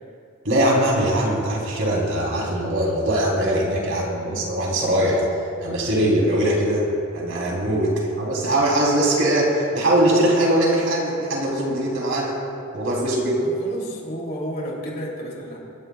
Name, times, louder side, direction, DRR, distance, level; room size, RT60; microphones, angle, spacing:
voice 1, 0.4-5.2 5.6-6.9 7.1-12.4 12.7-13.4, right 1 dB, 65° right, -3 dB, 3.5 m, -21 dB
voice 2, 13.4-15.6, equal, 45° left, -3 dB, 3.1 m, -32 dB
25.5 x 13.0 x 2.4 m, 2.5 s
head